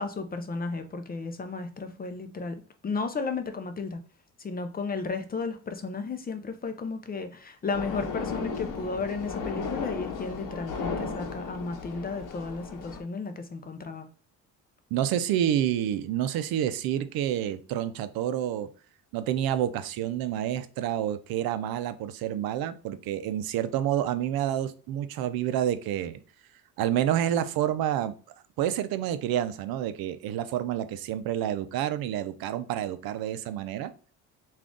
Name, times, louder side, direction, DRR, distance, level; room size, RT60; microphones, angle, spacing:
voice 1, 0.0-4.0 4.4-14.1, left 4 dB, 25° left, 0.5 m, -34 dB
sound 1, 7.7-13.0, left 5 dB, 60° left, 0.9 m, -35 dB
voice 2, 14.9-18.7 19.1-26.2 26.8-28.1 28.6-33.9, right 11 dB, 75° right, 0.5 m, -28 dB
3.7 x 2.5 x 3.5 m
cardioid pair, 110°, 36 cm